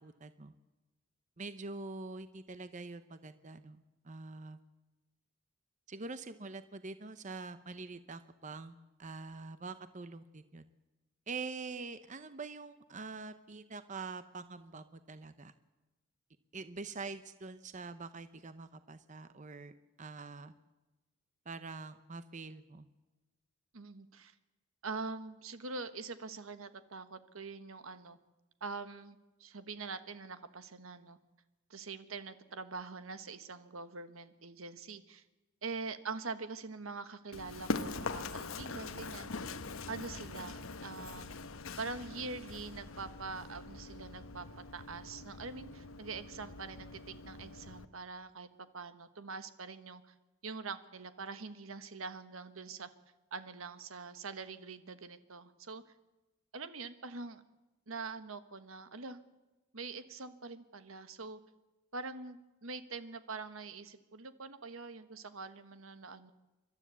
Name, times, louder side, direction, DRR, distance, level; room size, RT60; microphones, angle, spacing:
voice 1, 0.0-0.5 1.4-4.6 5.9-10.7 11.3-15.5 16.5-20.5 21.5-22.9, right 3 dB, 35° right, 11 dB, 0.8 m, -45 dB
voice 2, 23.7-24.3 24.8-28.2 28.6-31.2 31.7-35.2 35.6-39.3 39.9-41.3 41.8-44.5 44.7-50.1 50.4-52.9 53.3-55.8 56.5-57.4 57.9-59.2 59.7-61.4 61.9-66.3, right 4 dB, 80° right, 11 dB, 1.3 m, -44 dB
Run, 37.3-47.9, left 3 dB, 80° left, 1.0 m, -43 dB
29.5 x 12.5 x 8.3 m, 1.1 s
head